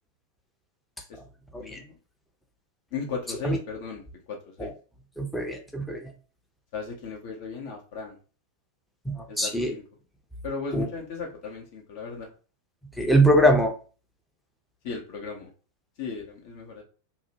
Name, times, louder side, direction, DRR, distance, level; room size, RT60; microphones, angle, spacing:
voice 1, 1.5-1.9 2.9-4.7 6.7-8.2 9.3-9.8 10.4-12.3 14.8-15.5 16.0-16.8, left 4 dB, 50° left, 2 dB, 0.6 m, -36 dB
voice 2, 5.2-6.0 9.1-9.7 10.7-10.9 13.0-13.7, right 1 dB, 5° left, 3 dB, 0.6 m, -22 dB
2.7 x 2.1 x 2.8 m, 0.36 s
figure-of-eight pair, 90°, 0 cm